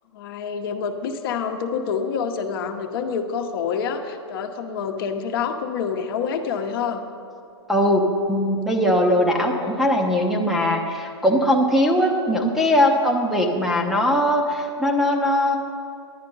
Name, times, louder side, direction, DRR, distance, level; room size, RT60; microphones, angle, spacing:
voice 1, 0.1-7.0, left 6 dB, 50° left, 5 dB, 1.0 m, -27 dB
voice 2, 7.7-15.6, equal, ahead, -3 dB, 0.8 m, -20 dB
10.5 x 9.5 x 5.4 m, 2.6 s
hypercardioid pair, 140°, 15 cm